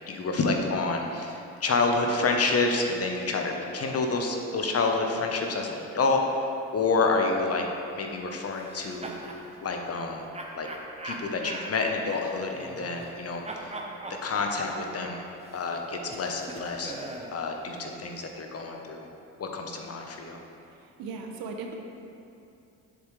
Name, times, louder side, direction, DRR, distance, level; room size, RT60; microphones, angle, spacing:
voice 1, 0.1-7.7 7.9-9.1 9.6-10.3 10.5-10.7 11.0-13.7 14.2-15.2 15.5-16.9 17.3-19.1 19.4-20.4, left 3 dB, 40° left, 2 dB, 1.0 m, -28 dB
sound 1, 8.6-9.4 10.3-13.2 13.4-17.4, right 2 dB, 15° right, 1.0 m, -41 dB
voice 2, 20.7-21.7, right 4 dB, 65° right, 3 dB, 0.9 m, -38 dB
7.5 x 7.1 x 3.3 m, 2.6 s
hypercardioid pair, 55°, 39 cm